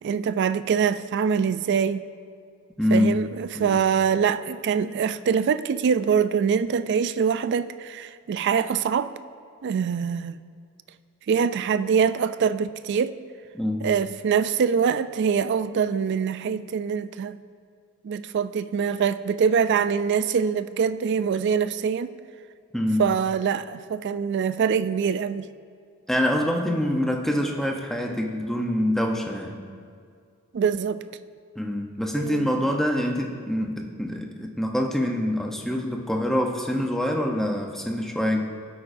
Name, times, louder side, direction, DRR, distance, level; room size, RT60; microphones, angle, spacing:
voice 1, 0.0-2.1 2.9-9.1 9.6-10.4 11.3-13.2 13.8-17.4 18.0-22.1 23.0-25.5 30.5-31.0 32.2-32.7, right 6 dB, 50° right, 0.3 m, -24 dB
voice 2, 2.8-3.2 3.5-3.8 13.5-13.9 22.7-23.1 26.1-29.6 31.6-38.4, left 1 dB, ahead, 0.7 m, -25 dB
16.0 x 8.4 x 2.6 m
head